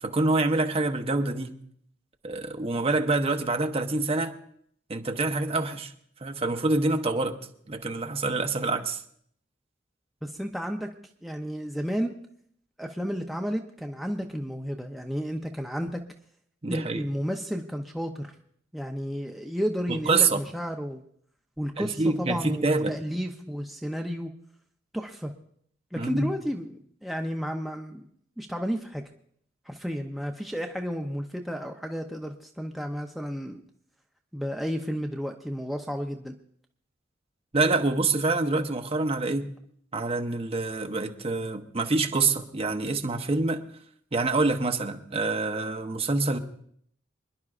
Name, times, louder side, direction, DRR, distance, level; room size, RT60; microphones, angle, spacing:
voice 1, 0.0-1.5 2.2-4.3 4.9-5.9 6.2-7.4 7.7-9.0 16.6-17.1 19.9-20.4 21.8-23.0 26.0-26.3 37.5-39.5 39.9-43.6 44.1-46.4, right 3 dB, 30° right, 5 dB, 0.9 m, -26 dB
voice 2, 10.2-10.9 11.2-12.1 12.8-16.0 16.7-18.3 18.7-21.0 21.6-24.3 24.9-25.3 25.9-28.1 28.4-29.0 29.7-33.6 34.3-36.3, equal, ahead, 2 dB, 0.6 m, -32 dB
26.5 x 11.0 x 2.5 m, 0.65 s
head